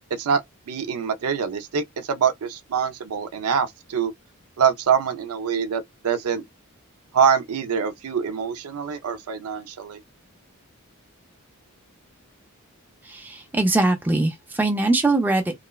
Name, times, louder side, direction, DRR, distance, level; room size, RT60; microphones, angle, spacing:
voice 1, 0.7-4.1 4.6-6.4 7.1-10.0, right 7 dB, 85° right, 0.4 m, -24 dB
voice 2, 13.0-15.5, right 2 dB, 10° right, 0.4 m, -22 dB
3.0 x 2.0 x 2.2 m
head